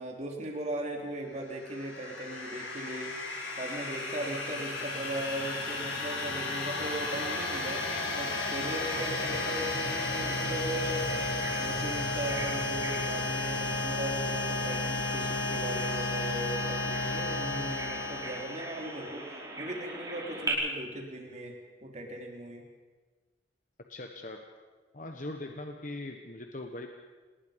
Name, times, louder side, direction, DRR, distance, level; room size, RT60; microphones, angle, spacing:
voice 1, 0.0-3.1 3.6-7.8 8.2-11.1 11.6-22.6, right 1 dB, 35° right, 1 dB, 3.6 m, -38 dB
sound 1, 1.5-19.1, left 2 dB, 70° left, 7.7 m, -33 dB
Bird vocalization bird call bird song, 8.7-20.5, right 2 dB, 20° right, 5.1 m, -42 dB
voice 2, 23.9-24.4 24.9-26.9, left 2 dB, 40° left, 4 dB, 1.3 m, -40 dB
27.0 x 20.0 x 5.3 m, 1.4 s
head